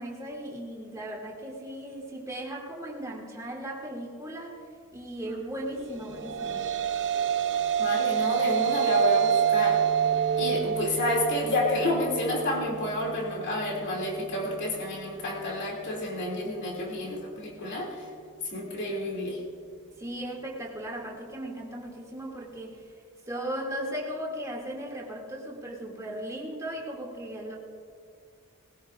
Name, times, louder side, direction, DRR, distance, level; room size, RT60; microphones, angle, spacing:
voice 1, 0.0-4.6 4.9-6.7 20.0-22.8 23.3-27.6, right 1 dB, 15° right, -3 dB, 2.5 m, -37 dB
sound 1, 6.0-14.5, right 8 dB, 55° right, 0.7 m, -27 dB
voice 2, 7.8-9.8 10.4-18.0 18.5-19.4, left 1 dB, 55° left, -2 dB, 2.6 m, -30 dB
20.0 x 19.5 x 2.5 m, 2.3 s
head